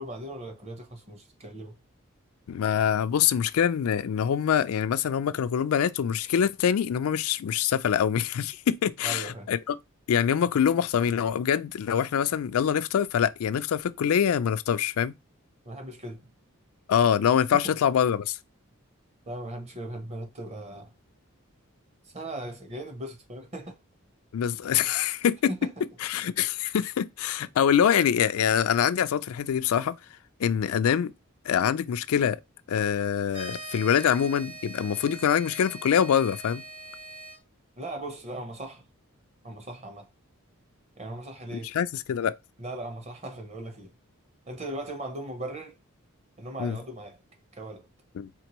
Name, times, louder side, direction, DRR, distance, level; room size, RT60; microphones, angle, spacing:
voice 1, 0.0-1.8 9.0-9.5 15.6-16.3 17.5-17.7 19.3-20.9 22.0-23.8 25.5-25.7 37.8-38.9 39.4-40.1 41.0-41.7 42.6-43.9 44.5-45.8 46.4-47.2 47.5-47.9, right 1 dB, 30° right, 0.8 m, -38 dB
voice 2, 2.5-9.7 10.1-15.1 16.9-18.4 24.3-25.5 26.0-30.0 30.4-31.1 31.5-32.4 32.7-36.6 41.5-42.3 46.6-46.8 48.2-48.3, left 8 dB, 85° left, 0.4 m, -24 dB
sound 1, 33.3-37.4, right 1 dB, 80° right, 2.2 m, -42 dB
4.4 x 3.3 x 3.0 m
head